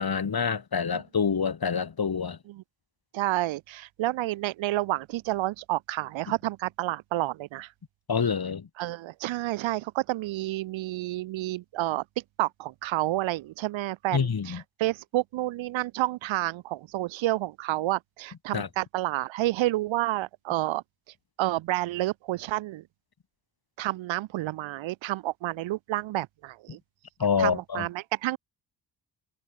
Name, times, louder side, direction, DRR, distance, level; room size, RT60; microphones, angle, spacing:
voice 1, 0.0-2.4 8.1-8.7 14.1-14.6 18.5-18.7 27.2-27.8, left 6 dB, 55° left, 6.3 m, -27 dB
voice 2, 3.1-7.7 8.8-12.0 12.4-20.8 21.4-22.8 23.8-26.8 27.4-28.4, right 16 dB, 90° right, 5.9 m, -30 dB
supercardioid pair, 45°, 45 cm